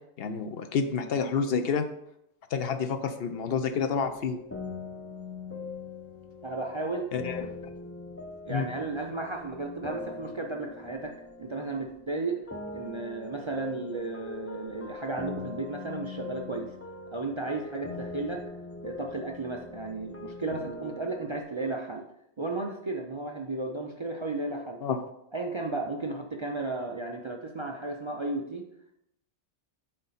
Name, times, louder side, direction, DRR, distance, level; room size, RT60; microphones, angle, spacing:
voice 1, 0.2-1.9 2.5-4.4 7.1-7.5 8.5-8.7 24.8-25.0, left 6 dB, 65° left, 8 dB, 0.8 m, -29 dB
sound 1, 3.3-12.2 12.5-21.4, left 3 dB, 20° left, 0.3 m, -42 dB
voice 2, 6.4-7.1 8.4-12.4 12.7-16.8 17.1-18.4 18.8-22.0 22.4-24.8 25.3-28.7, right 3 dB, 35° right, 2 dB, 0.5 m, -34 dB
7.6 x 4.3 x 4.1 m, 0.79 s
omnidirectional pair, 1.2 m